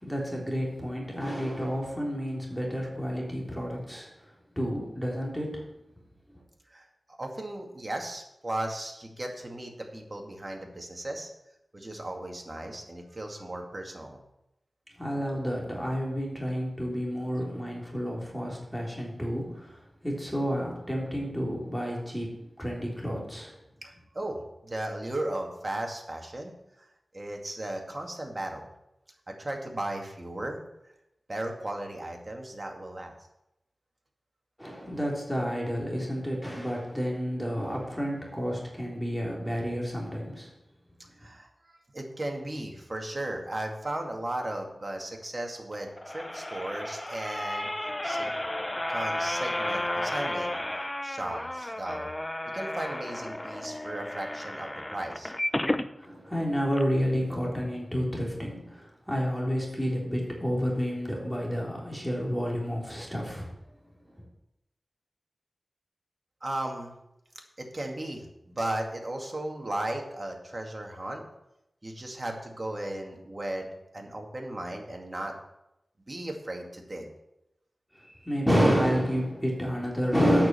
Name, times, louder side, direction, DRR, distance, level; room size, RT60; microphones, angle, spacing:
voice 1, 0.0-4.1 4.5-5.6 15.0-19.8 20.0-22.3 22.6-23.5 34.6-40.5 56.0-63.5 78.2-80.5, equal, ahead, -3 dB, 3.5 m, -30 dB
voice 2, 6.7-11.3 11.7-14.2 23.8-26.5 26.8-26.9 27.1-28.7 29.3-30.6 31.3-33.2 41.2-47.7 48.0-48.3 48.9-50.5 51.0-52.1 52.5-55.3 66.4-66.9 67.3-71.2 71.8-73.7 73.9-75.3 76.1-77.1, right 1 dB, 40° right, 2 dB, 2.2 m, -36 dB
sound 1, 45.7-55.9 56.4-56.5 56.7-56.8, left 1 dB, 20° left, 0.6 m, -33 dB
8.7 x 6.6 x 7.5 m, 0.87 s
wide cardioid pair, 55°, 0 cm